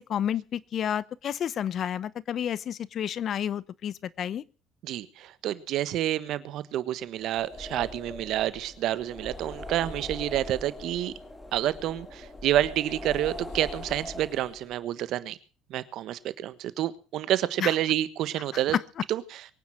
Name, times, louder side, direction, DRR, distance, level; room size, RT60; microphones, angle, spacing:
voice 1, 0.0-4.4 17.6-17.7 18.7-18.8, left 9 dB, 50° left, 20 dB, 0.8 m, -30 dB
voice 2, 4.8-11.1 11.5-15.4 15.7-18.8 19.1-19.2, right 13 dB, 65° right, 15 dB, 1.4 m, -29 dB
sound 1, 7.2-14.8, left 1 dB, 20° left, 3.5 m, -41 dB
23.0 x 9.6 x 6.1 m, 0.36 s
supercardioid pair, 75°, 0 cm